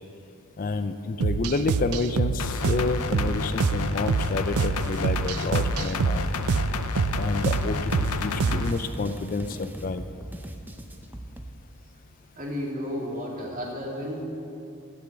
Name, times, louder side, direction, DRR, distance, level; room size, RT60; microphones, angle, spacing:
voice 1, 0.6-6.4 7.2-10.1, left 3 dB, 40° left, 9 dB, 0.4 m, -29 dB
sound 1, 1.2-8.8, right 5 dB, 75° right, 0.4 m, -27 dB
sound 2, 2.4-8.7, left 3 dB, 85° left, 0.7 m, -30 dB
sound 3, 7.6-11.5, right 1 dB, 10° right, 0.6 m, -41 dB
voice 2, 12.3-14.2, equal, 40° right, -3 dB, 2.4 m, -33 dB
14.5 x 6.0 x 8.5 m, 2.6 s
head